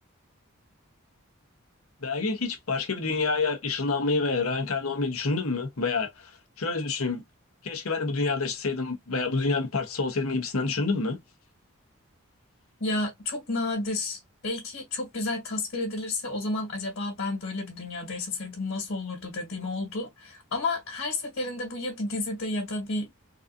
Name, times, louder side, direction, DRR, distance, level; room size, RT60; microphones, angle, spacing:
voice 1, 2.0-6.3 6.6-7.2 7.6-11.2, left 3 dB, 85° left, 1.0 m, -28 dB
voice 2, 12.8-23.2, left 2 dB, 65° left, 1.7 m, -31 dB
3.9 x 2.6 x 2.6 m
head